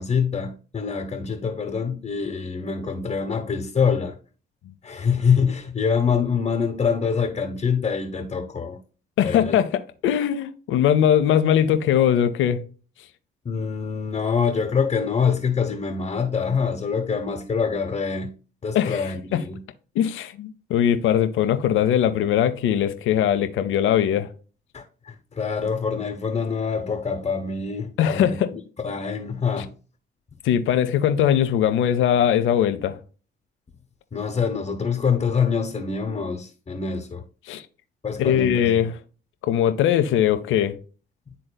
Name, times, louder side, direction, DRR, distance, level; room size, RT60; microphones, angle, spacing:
voice 1, 0.0-4.2 4.8-8.8 9.2-9.6 13.4-18.3 18.6-19.6 24.7-29.7 34.1-37.2 38.0-38.8, left 6 dB, 30° left, 1.0 m, -25 dB
voice 2, 9.2-12.6 18.7-19.4 19.9-24.3 28.0-28.5 29.6-29.7 30.4-33.0 37.5-37.6 38.2-39.0 39.4-40.8, left 10 dB, 80° left, 0.7 m, -21 dB
11.5 x 3.8 x 2.2 m
cardioid pair, 90°, 20 cm